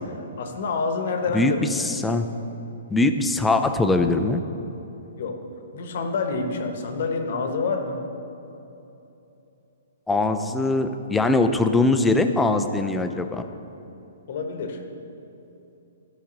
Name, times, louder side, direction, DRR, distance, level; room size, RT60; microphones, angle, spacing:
voice 1, 0.4-1.6 5.2-5.4 5.7-8.0 14.3-14.8, left 4 dB, 55° left, 4 dB, 1.0 m, -27 dB
voice 2, 1.3-2.3 2.9-4.4 10.1-13.4, left 2 dB, 5° left, 7 dB, 0.5 m, -21 dB
13.5 x 5.1 x 4.0 m, 2.9 s
figure-of-eight pair, 120°, 0 cm